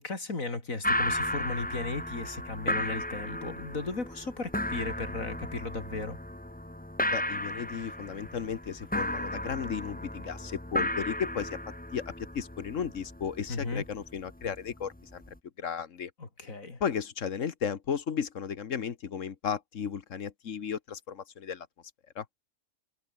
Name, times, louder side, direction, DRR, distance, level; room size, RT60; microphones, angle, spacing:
voice 1, 0.0-6.2 13.5-13.9 16.2-16.8, left 3 dB, 90° left, 4.1 m, -36 dB
sound 1, 0.8-15.4, left 1 dB, 5° left, 1.3 m, -34 dB
voice 2, 7.1-11.6 11.9-15.2 15.6-16.1 16.8-21.7 22.1-22.2, left 7 dB, 70° left, 1.6 m, -34 dB
omnidirectional pair, 1.4 m